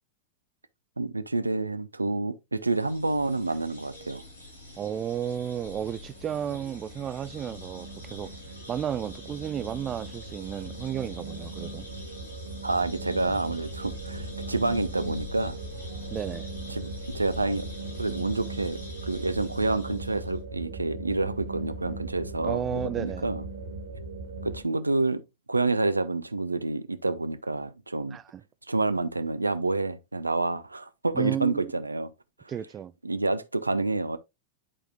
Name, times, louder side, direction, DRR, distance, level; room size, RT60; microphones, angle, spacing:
voice 1, 1.0-4.2 12.6-15.6 16.7-17.7 18.0-23.4 24.4-25.2 25.5-28.2 28.7-32.1 33.0-34.2, right 2 dB, 80° right, 0.5 m, -28 dB
sound 1, 2.6-20.4, left 2 dB, 85° left, 2.8 m, -45 dB
voice 2, 4.8-8.3 8.7-11.9 16.1-16.5 22.4-23.3 28.1-28.4 31.1-31.7 32.5-32.9, right 9 dB, 25° right, 0.4 m, -33 dB
sound 2, 6.0-24.6, right 3 dB, 65° right, 1.8 m, -39 dB
11.0 x 4.9 x 2.2 m
figure-of-eight pair, 90°, 0 cm